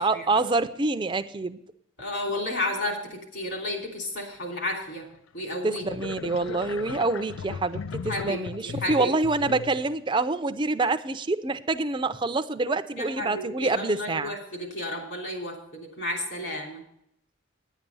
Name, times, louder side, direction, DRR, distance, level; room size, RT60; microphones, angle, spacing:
voice 1, 0.0-1.6 5.6-14.3, right 3 dB, 25° right, 10 dB, 0.4 m, -26 dB
voice 2, 2.0-5.1 5.3-5.8 8.1-9.1 13.0-16.8, left 1 dB, 60° left, 1 dB, 3.1 m, -32 dB
sound 1, 5.1-5.2 5.8-10.0, left 6 dB, 80° left, 0.4 m, -37 dB
10.5 x 9.1 x 5.4 m, 0.74 s
head